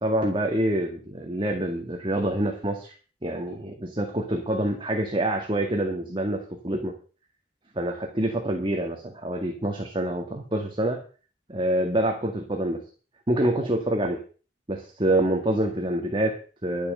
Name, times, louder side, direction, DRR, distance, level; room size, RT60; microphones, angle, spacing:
voice 1, 0.0-3.0 3.2-6.9 7.8-11.0 11.5-12.8 13.3-14.2 14.7-16.9, right 1 dB, 30° right, 3 dB, 2.0 m, -26 dB
11.5 x 8.5 x 6.7 m, 0.38 s
head